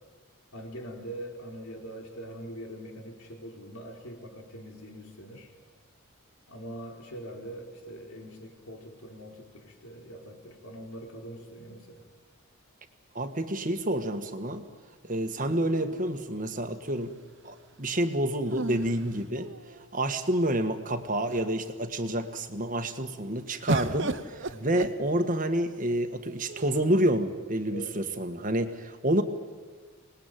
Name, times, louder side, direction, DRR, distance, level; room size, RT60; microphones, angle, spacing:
voice 1, 0.5-5.5 6.5-12.1 24.5-24.7 27.7-28.0, right 1 dB, 75° left, 2 dB, 4.4 m, -43 dB
voice 2, 13.1-14.6 15.0-17.1 17.4-19.5 19.9-29.2, right 1 dB, 35° right, 7 dB, 1.6 m, -28 dB
sound 1, 15.4-16.5 18.4-20.0 20.7-20.8 21.1-21.7 23.7-25.6 26.5-27.2, right 2 dB, 55° right, 1.0 m, -35 dB
26.5 x 20.0 x 9.3 m, 1.5 s
head